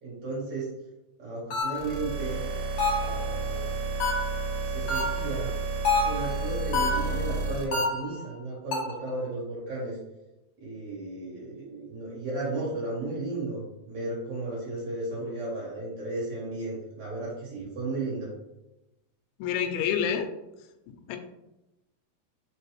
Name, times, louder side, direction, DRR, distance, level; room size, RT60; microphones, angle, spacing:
voice 1, 0.0-0.7 1.2-2.4 3.0-3.8 4.6-5.5 6.0-10.0 10.6-18.3, right 2 dB, 55° right, -7 dB, 2.4 m, -34 dB
sound 1, 1.5-2.0 2.8-3.2 4.0-4.5 4.9-5.4 5.9-6.4 6.7-7.2 7.7-8.2 8.7-9.1, left 3 dB, 65° left, 1.4 m, -28 dB
sound 2, 1.7-7.6, right 3 dB, 80° right, 2.4 m, -31 dB
voice 2, 19.4-20.3 21.1-21.2, left 8 dB, 85° left, 6 dB, 2.4 m, -27 dB
5.7 x 2.6 x 3.0 m, 0.94 s
omnidirectional pair, 4.2 m